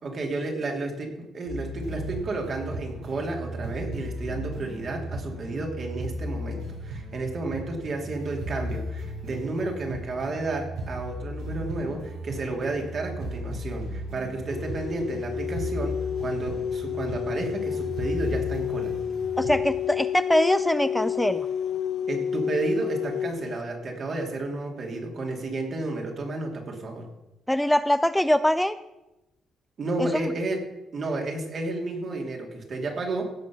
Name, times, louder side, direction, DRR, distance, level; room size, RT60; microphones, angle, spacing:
voice 1, 0.0-18.9 22.1-27.1 29.8-30.6 30.9-33.3, right 2 dB, 50° right, 2 dB, 2.7 m, -31 dB
sound 1, 1.5-19.6, equal, 85° right, 3.2 m, -36 dB
sound 2, 14.5-23.6, left 9 dB, 65° left, 0.4 m, -30 dB
voice 2, 19.4-21.5 27.5-28.8 30.0-30.3, left 1 dB, 5° left, 12 dB, 0.4 m, -23 dB
16.0 x 5.4 x 6.1 m, 0.97 s
supercardioid pair, 70°, 0 cm